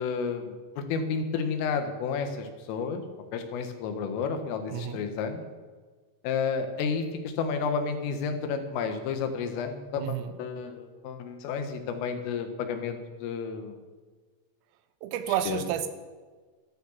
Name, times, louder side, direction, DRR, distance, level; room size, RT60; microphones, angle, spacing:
voice 1, 0.0-3.0 3.3-5.4 6.2-13.8 15.5-15.6, left 5 dB, 85° left, 6 dB, 4.1 m, -31 dB
voice 2, 4.7-5.0 10.0-10.3 15.0-15.9, right 10 dB, 90° right, 9 dB, 3.4 m, -30 dB
13.5 x 12.5 x 7.3 m, 1.4 s
omnidirectional pair, 5.7 m